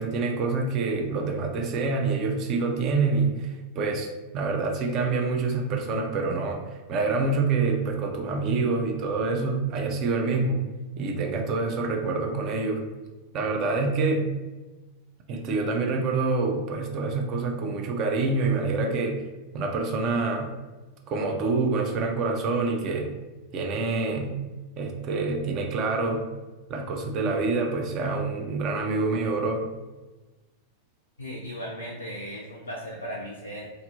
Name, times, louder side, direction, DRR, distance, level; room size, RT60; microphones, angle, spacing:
voice 1, 0.0-10.7 11.0-12.8 13.3-14.3 15.3-19.2 19.5-20.5 21.1-23.1 23.5-24.4 24.8-26.3 26.7-29.7, right 3 dB, 35° right, 2 dB, 0.4 m, -26 dB
voice 2, 31.2-33.7, equal, 80° left, -4 dB, 0.3 m, -36 dB
2.5 x 2.0 x 2.4 m, 1.2 s
figure-of-eight pair, 90°, 0 cm